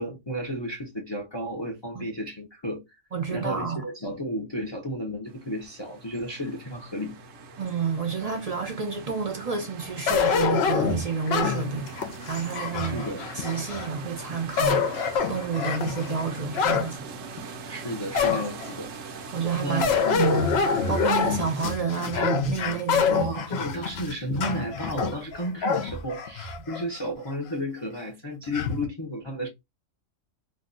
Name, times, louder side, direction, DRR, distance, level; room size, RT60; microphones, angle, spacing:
voice 1, 0.0-3.0 3.3-7.2 12.8-13.3 17.7-18.9 19.6-20.3 23.2-29.5, equal, 30° left, 0.5 m, -33 dB
voice 2, 3.1-3.8 7.6-11.9 12.3-13.1 13.3-17.0 19.3-23.4, right 5 dB, 40° right, 0.6 m, -29 dB
sound 1, 5.3-21.8, right 4 dB, 75° right, 1.0 m, -41 dB
sound 2, 10.1-13.9 14.4-16.9 17.4-17.5 18.1-18.7 19.8-26.8 27.3-27.4 28.5-28.9, left 6 dB, 60° left, 0.8 m, -26 dB
2.7 x 2.2 x 3.7 m
omnidirectional pair, 1.3 m